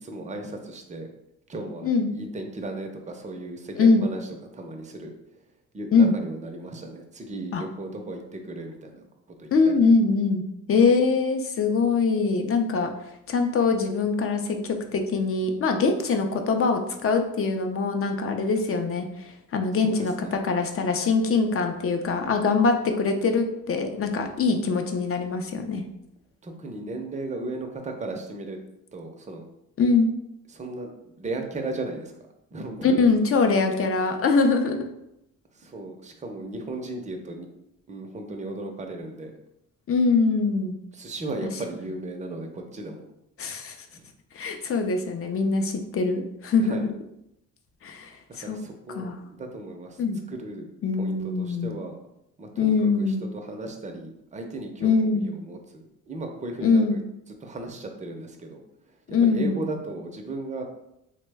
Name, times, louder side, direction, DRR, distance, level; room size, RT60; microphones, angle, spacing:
voice 1, 0.0-1.1 1.5-5.1 5.7-9.0 9.4-9.7 19.8-20.4 26.4-28.6 28.9-29.4 30.5-32.1 32.5-33.0 35.5-37.5 37.9-39.3 40.9-43.0 43.9-44.1 46.6-46.9 48.4-50.0 50.3-50.7 51.0-52.0 52.4-57.0 57.4-58.6 59.2-60.6, right 2 dB, 20° right, 3 dB, 0.5 m, -36 dB
voice 2, 3.8-4.1 5.9-6.1 7.5-7.6 9.5-10.4 10.7-12.9 13.3-25.8 29.8-30.1 32.8-34.8 39.9-40.7 41.4-41.5 43.4-43.8 44.3-46.9 47.8-48.6 48.9-49.2 50.0-50.2 50.8-51.8 52.6-53.2 54.8-55.3 56.6-57.0 59.1-59.6, left 4 dB, 40° left, 5 dB, 0.5 m, -23 dB
3.0 x 2.1 x 3.3 m, 0.82 s
cardioid pair, 75°, 36 cm